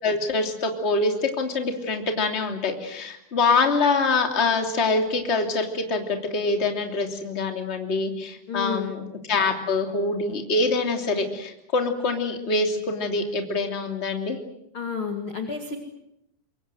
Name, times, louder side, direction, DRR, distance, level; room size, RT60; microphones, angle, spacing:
voice 1, 0.0-14.4, left 3 dB, 20° left, 4 dB, 2.4 m, -25 dB
voice 2, 8.5-9.0 14.7-15.8, left 5 dB, 40° left, 4 dB, 2.2 m, -30 dB
27.0 x 23.0 x 7.9 m, 0.82 s
omnidirectional pair, 5.3 m